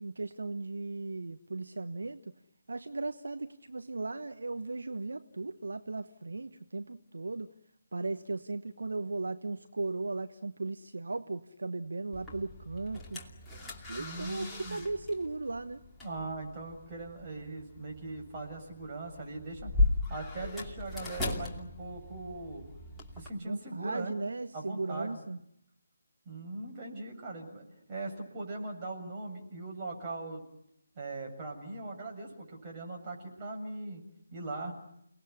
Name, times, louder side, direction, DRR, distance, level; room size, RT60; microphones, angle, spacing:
voice 1, 0.0-2.3 2.7-7.5 7.9-13.2 13.9-15.8 23.4-25.4, right 3 dB, 65° right, 10 dB, 1.2 m, -37 dB
sound 1, 12.1-23.3, left 2 dB, 5° left, 2.7 m, -37 dB
voice 2, 14.0-14.9 16.0-19.7 20.1-22.6 23.2-24.1 24.5-25.2 26.3-30.4 31.0-34.0 34.3-34.7, right 2 dB, 25° right, 0 dB, 7.3 m, -40 dB
30.0 x 19.5 x 9.6 m, 0.77 s
figure-of-eight pair, 150°, 0 cm